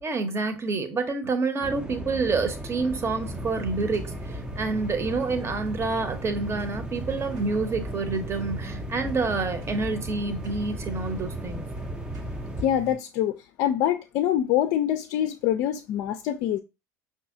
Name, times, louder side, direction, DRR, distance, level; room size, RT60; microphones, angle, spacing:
voice 1, 0.0-11.7, right 3 dB, 30° right, 0.9 m, -28 dB
sound 1, 1.6-12.7, right 1 dB, 10° right, 0.5 m, -36 dB
sound 2, 3.2-12.9, right 3 dB, 80° right, 1.4 m, -41 dB
voice 2, 12.6-16.6, left 11 dB, 60° left, 0.4 m, -25 dB
5.4 x 2.7 x 2.6 m
hypercardioid pair, 75°, 9 cm